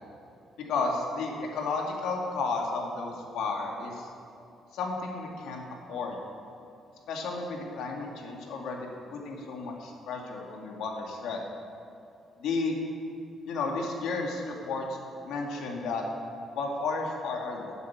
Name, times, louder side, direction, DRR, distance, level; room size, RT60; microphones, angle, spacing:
voice 1, 0.7-4.1 4.7-5.6 5.9-6.2 7.1-11.4 12.4-12.8 13.4-15.0 15.2-16.1 16.5-17.7, left 3 dB, 85° left, 0 dB, 2.4 m, -32 dB
13.5 x 8.3 x 8.7 m, 2.6 s
cardioid pair, 150°, 0 cm